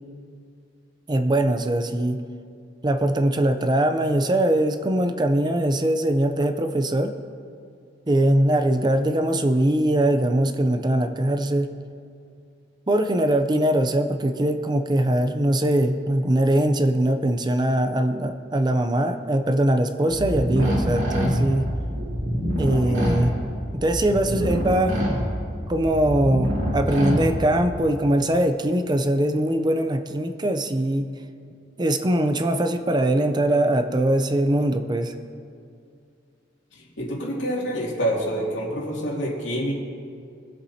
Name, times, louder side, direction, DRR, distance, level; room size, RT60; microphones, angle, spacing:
voice 1, 1.1-2.2 2.8-7.1 8.1-11.7 12.9-21.7 22.6-23.3 23.7-25.0 25.7-31.1 31.8-35.1, right 1 dB, 25° right, 7 dB, 0.5 m, -21 dB
sound 1, 20.1-27.8, equal, 80° right, 2.8 m, -26 dB
voice 2, 22.7-23.0 36.7-39.7, equal, 85° left, -3 dB, 2.5 m, -27 dB
22.0 x 7.8 x 2.8 m, 2.4 s
head